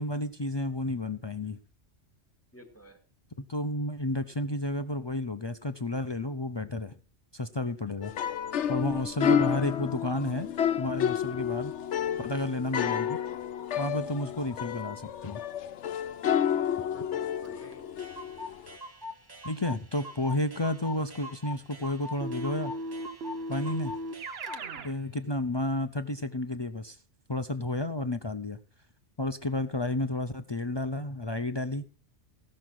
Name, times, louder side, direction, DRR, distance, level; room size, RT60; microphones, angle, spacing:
voice 1, 0.0-1.6 3.4-6.9 7.3-8.1 8.7-10.5 10.8-11.7 12.2-13.2 13.8-15.4 19.4-22.7 23.5-23.9 24.8-27.0 27.3-28.6 29.2-31.9, left 1 dB, 30° left, 0.5 m, -31 dB
voice 2, 2.5-3.0 8.9-9.2 16.0-16.5 16.7-17.9, right 1 dB, 10° left, 1.9 m, -51 dB
sound 1, 8.0-18.7, left 9 dB, 75° left, 1.0 m, -30 dB
Clock, 17.4-17.5 17.7-17.8 18.0-24.6, left 1 dB, 20° right, 1.0 m, -43 dB
Keyboard (musical), 22.2-24.9, right 1 dB, 60° right, 1.2 m, -37 dB
16.0 x 6.4 x 6.0 m
omnidirectional pair, 1.2 m